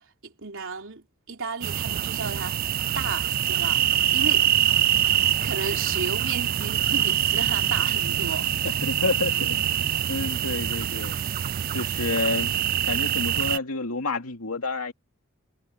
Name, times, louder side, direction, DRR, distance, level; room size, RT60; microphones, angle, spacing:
voice 1, 0.0-2.6 2.9-3.8 4.1-4.5 5.4-8.5, right 4 dB, 60° right, 3.7 m, -34 dB
sound 1, 1.6-13.6, right 11 dB, 40° right, 0.3 m, -24 dB
sound 2, 4.6-11.6, equal, 55° left, 6.0 m, -45 dB
voice 2, 8.6-9.6 10.1-11.1 11.7-12.5 12.9-14.9, left 3 dB, 80° left, 2.5 m, -29 dB
head